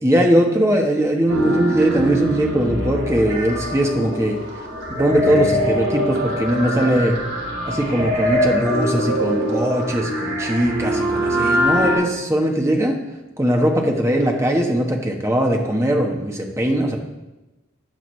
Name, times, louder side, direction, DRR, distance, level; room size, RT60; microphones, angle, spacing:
voice 1, 0.0-4.4 4.9-7.1 7.7-13.0 13.4-17.0, right 1 dB, 15° right, 1 dB, 1.2 m, -20 dB
sound 1, 1.3-12.0, equal, 80° right, 3.4 m, -23 dB
14.0 x 8.9 x 3.3 m, 1.0 s
head